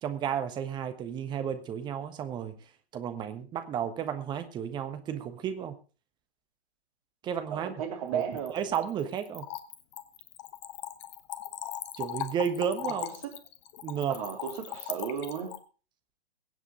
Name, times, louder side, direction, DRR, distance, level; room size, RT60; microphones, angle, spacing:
voice 1, 0.0-2.5 2.9-5.8 7.2-7.7 8.1-8.2 8.5-9.5 12.0-13.0 13.8-14.2, right 8 dB, 15° right, 1.3 m, -32 dB
voice 2, 7.5-8.6 12.8-13.3 14.1-15.5, right 8 dB, 35° right, 3.3 m, -35 dB
Splash splatter / Trickle dribble, 8.2-15.6, left 13 dB, 30° left, 1.2 m, -39 dB
23.0 x 8.2 x 3.8 m
figure-of-eight pair, 125°, 31 cm